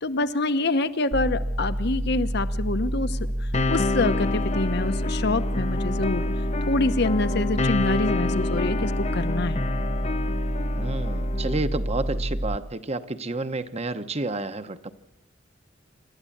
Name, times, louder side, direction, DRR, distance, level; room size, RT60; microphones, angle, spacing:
voice 1, 0.0-6.2 6.7-9.6, left 2 dB, 60° left, 11 dB, 1.0 m, -26 dB
sound 1, 1.1-12.6, equal, 10° right, 0.8 m, -28 dB
sound 2, 3.5-11.6, left 3 dB, 35° left, 0.7 m, -29 dB
voice 2, 10.8-14.9, right 2 dB, 35° right, 10 dB, 1.0 m, -30 dB
27.0 x 13.0 x 8.6 m, 0.85 s
head